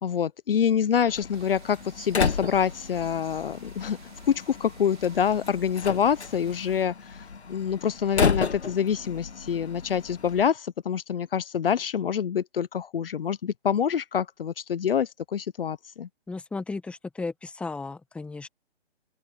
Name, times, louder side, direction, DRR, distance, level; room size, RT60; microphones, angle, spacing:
voice 1, 0.0-4.0 4.3-7.2 7.5-16.1, left 8 dB, 60° left, 1.0 m, -26 dB
Slam, 1.1-10.5, left 5 dB, 85° left, 1.6 m, -33 dB
sound 1, 1.3-6.8, right 10 dB, 45° right, 4.4 m, -51 dB
voice 2, 16.3-18.5, left 3 dB, 5° left, 1.4 m, -35 dB
open air
hypercardioid pair, 145°, 32 cm